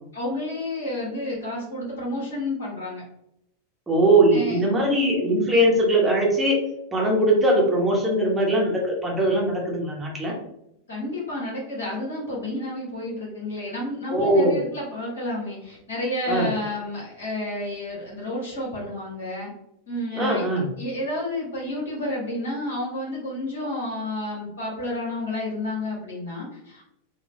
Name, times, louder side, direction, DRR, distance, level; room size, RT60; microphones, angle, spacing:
voice 1, 0.1-3.0 4.3-4.6 10.9-19.5 19.9-20.4 20.8-26.9, left 1 dB, 65° left, -4 dB, 1.4 m, -30 dB
voice 2, 3.9-6.6 6.9-10.3 14.1-14.6 16.3-16.5 20.1-20.7, right 1 dB, 10° right, -3 dB, 0.9 m, -20 dB
3.7 x 2.1 x 2.7 m, 0.79 s
figure-of-eight pair, 90°, 0 cm